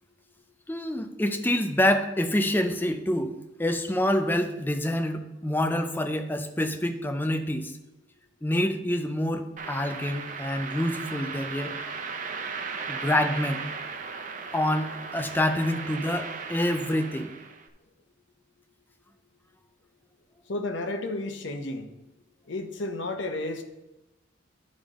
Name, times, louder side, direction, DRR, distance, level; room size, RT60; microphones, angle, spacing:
voice 1, 0.7-3.3 3.6-7.7 8.4-11.7 12.9-13.6 14.5-17.3, left 1 dB, 10° left, 6 dB, 0.5 m, -27 dB
sound 1, 9.6-17.7, right 5 dB, 40° right, 0.6 m, -36 dB
voice 2, 20.5-21.9 22.5-23.6, left 2 dB, 70° left, 5 dB, 0.9 m, -32 dB
10.5 x 5.2 x 3.7 m, 0.95 s
head